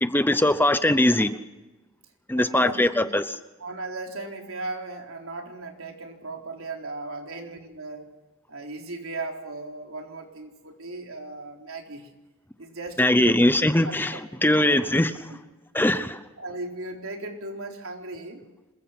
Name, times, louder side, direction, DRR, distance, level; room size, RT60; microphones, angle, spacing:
voice 1, 0.0-1.4 2.3-3.2 13.0-15.1 15.7-16.2, left 1 dB, 10° left, 0.8 m, -21 dB
voice 2, 2.3-3.2 3.6-8.1 8.5-12.1 12.6-13.5 13.8-14.8 15.3-15.4 15.8-16.1 16.4-18.4, right 2 dB, 80° right, 4.0 m, -37 dB
26.5 x 22.0 x 6.0 m
head